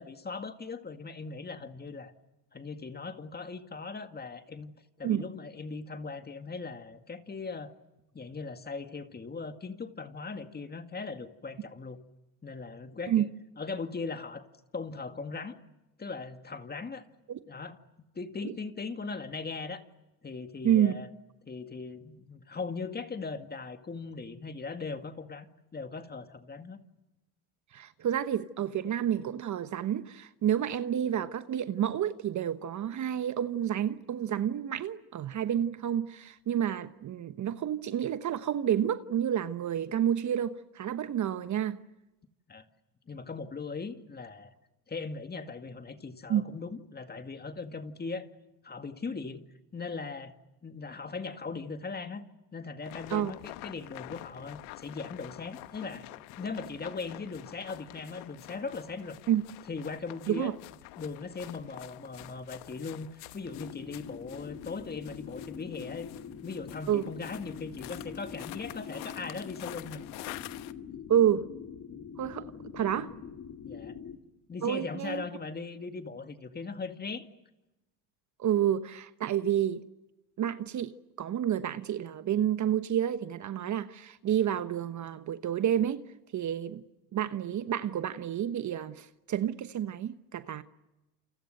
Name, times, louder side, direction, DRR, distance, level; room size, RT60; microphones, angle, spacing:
voice 1, 0.0-2.1 2.5-7.7 8.1-12.0 12.4-13.3 13.6-14.5 14.7-15.6 16.0-17.1 17.5-17.8 18.2-19.8 20.2-21.1 21.5-25.5 25.7-26.8 42.5-42.6 43.1-44.5 44.9-48.3 48.6-49.4 49.7-50.4 50.6-52.2 52.5-56.1 56.4-59.2 59.7-60.5 61.0-66.1 66.4-70.3 73.7-74.0 74.5-77.3, left 4 dB, 20° left, 2.1 m, -39 dB
voice 2, 20.6-20.9 27.7-41.8 46.3-46.4 53.1-53.3 59.3-59.4 60.3-60.5 66.9-67.0 71.1-71.5 72.2-72.5 72.7-73.1 74.6-75.2 78.4-79.8 80.4-86.0 86.3-86.8 87.1-90.6, right 10 dB, 40° right, 1.1 m, -29 dB
sound 1, 52.8-70.7, left 18 dB, 70° left, 1.2 m, -48 dB
sound 2, 63.4-74.2, left 7 dB, 40° left, 3.6 m, -44 dB
29.0 x 28.5 x 6.6 m
supercardioid pair, 90°, 46 cm